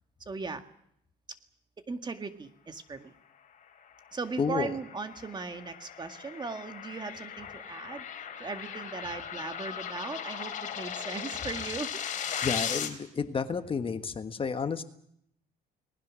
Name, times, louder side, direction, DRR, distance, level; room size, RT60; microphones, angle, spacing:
voice 1, 0.3-0.6 1.9-3.1 4.1-8.0 8.4-12.0, right 4 dB, 25° right, 8 dB, 2.0 m, -38 dB
sound 1, 4.0-12.9, left 8 dB, 50° left, 3.9 m, -38 dB
voice 2, 4.4-4.7 12.4-14.8, left 5 dB, 30° left, 9 dB, 1.5 m, -31 dB
30.0 x 20.0 x 6.4 m, 0.72 s
cardioid pair, 110°, 17 cm